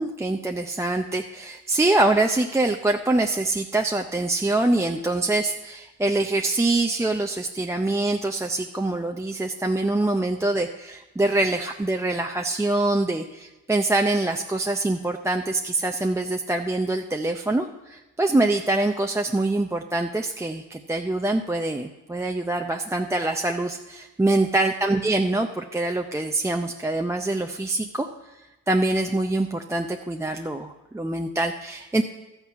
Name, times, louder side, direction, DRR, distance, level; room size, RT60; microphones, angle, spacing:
voice 1, 0.0-28.1 28.7-32.0, right 2 dB, 10° right, 3 dB, 0.6 m, -24 dB
12.5 x 8.5 x 5.7 m, 1.0 s
cardioid pair, 90°, 30 cm